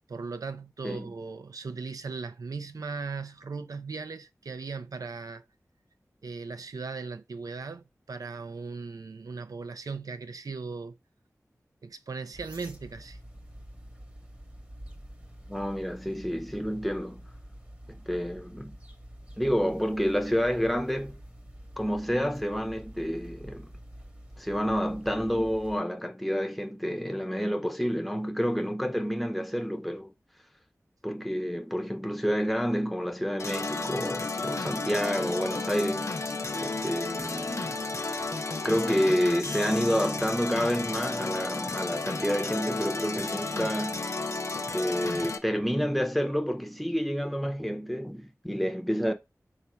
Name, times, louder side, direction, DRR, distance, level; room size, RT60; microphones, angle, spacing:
voice 1, 0.1-5.4 6.2-11.0 11.8-13.2, right 4 dB, 85° right, 0.4 m, -38 dB
sound 1, 12.3-25.8, equal, 20° right, 0.9 m, -47 dB
voice 2, 15.5-17.2 17.9-18.7 19.4-21.2 21.8-23.7 24.4-30.1 31.0-36.1 36.6-37.8 38.6-44.0 44.6-49.1, equal, ahead, 0.6 m, -29 dB
sound 2, 33.4-45.4, left 3 dB, 55° left, 0.5 m, -32 dB
4.0 x 2.4 x 4.3 m
wide cardioid pair, 50°, 6 cm